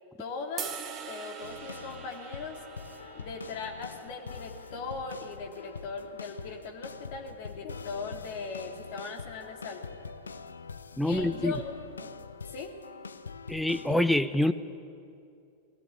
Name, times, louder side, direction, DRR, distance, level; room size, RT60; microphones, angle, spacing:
voice 1, 0.2-0.7 1.0-2.6 3.1-10.0 11.0-11.7 12.0-12.1 12.5-12.8, left 4 dB, 50° left, 2 dB, 3.1 m, -39 dB
sound 1, 0.6-6.8, right 7 dB, 30° right, 1.8 m, -45 dB
sound 2, 1.4-14.0, left 5 dB, 75° left, 0.7 m, -44 dB
voice 2, 11.0-11.6 13.5-14.5, left 1 dB, 5° left, 11 dB, 0.7 m, -26 dB
20.5 x 16.5 x 10.0 m, 2.5 s
figure-of-eight pair, 90°, 0 cm